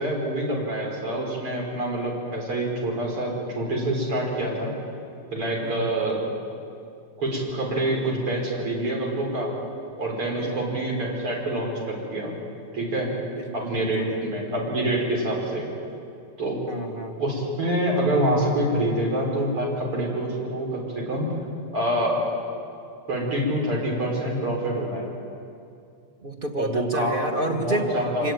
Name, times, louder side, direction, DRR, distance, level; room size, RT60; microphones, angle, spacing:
voice 1, 0.0-4.7 5.3-6.2 7.2-9.5 10.0-12.3 12.7-13.1 13.5-15.7 16.4-16.6 17.2-21.3 21.7-22.2 23.1-25.1 26.6-27.1 27.5-28.3, right 1 dB, 90° right, -1 dB, 6.3 m, -26 dB
voice 2, 5.6-5.9 10.4-10.7 13.2-14.2 16.7-17.3 26.2-28.3, right 1 dB, 25° right, 3 dB, 1.6 m, -30 dB
25.0 x 21.0 x 9.3 m, 2.5 s
omnidirectional pair, 2.3 m